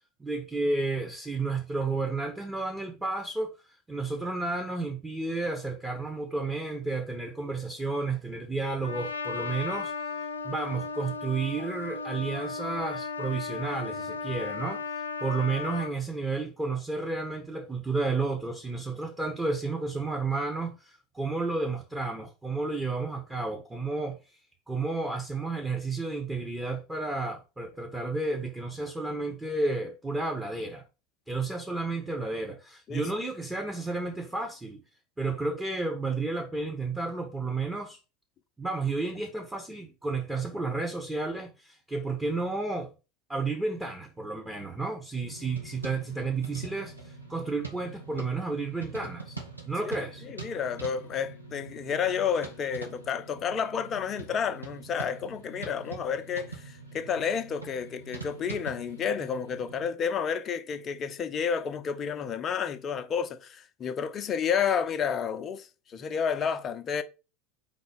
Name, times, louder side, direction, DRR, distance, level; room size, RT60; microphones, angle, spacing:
voice 1, 0.2-3.5 3.9-9.9 10.4-24.2 24.7-30.8 31.3-34.8 35.2-38.0 38.6-42.9 43.3-49.4 49.6-50.2, right 3 dB, 10° right, 1.4 m, -32 dB
Trumpet, 8.8-15.9, left 4 dB, 80° left, 0.6 m, -35 dB
sound 1, 45.2-59.9, right 3 dB, 90° right, 1.2 m, -44 dB
voice 2, 50.2-67.0, left 7 dB, 35° left, 0.8 m, -30 dB
4.9 x 4.0 x 5.2 m
figure-of-eight pair, 80°, 0 cm